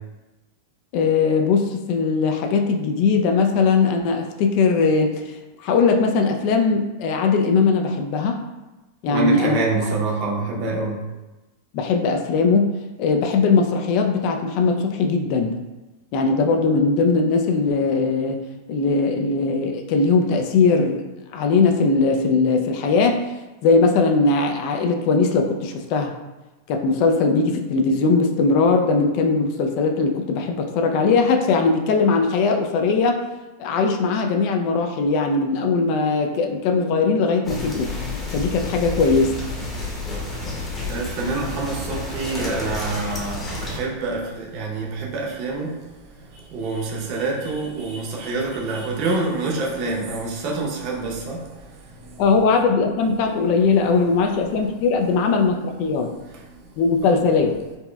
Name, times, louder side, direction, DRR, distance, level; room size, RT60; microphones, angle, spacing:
voice 1, 0.9-8.4 9.0-9.6 11.7-12.7 13.0-15.6 16.1-18.4 18.7-21.0 21.3-23.2 23.6-26.1 26.7-33.2 33.6-37.9 38.3-39.4 52.2-56.1 56.8-57.5, left 4 dB, 55° left, 4 dB, 0.3 m, -20 dB
voice 2, 9.1-11.0 40.8-45.8 46.1-52.2 57.0-57.1, right 3 dB, 50° right, -2 dB, 0.8 m, -26 dB
sound 1, 37.4-43.8, left 2 dB, 20° left, 0.9 m, -30 dB
4.1 x 2.2 x 2.2 m, 1.1 s
hypercardioid pair, 120°, 0 cm